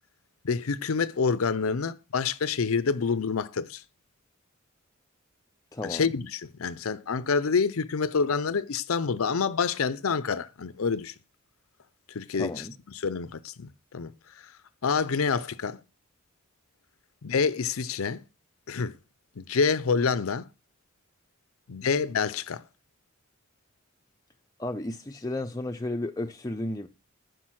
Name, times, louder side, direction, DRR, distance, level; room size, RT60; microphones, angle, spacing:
voice 1, 0.4-3.8 5.8-11.1 12.1-12.6 13.0-14.5 14.8-15.8 17.2-18.2 18.7-18.9 19.4-20.5 21.7-22.6, left 5 dB, 85° left, 0.6 m, -27 dB
voice 2, 5.7-6.1 12.3-12.7 24.6-26.9, left 1 dB, 15° left, 0.5 m, -33 dB
10.0 x 6.6 x 6.2 m
head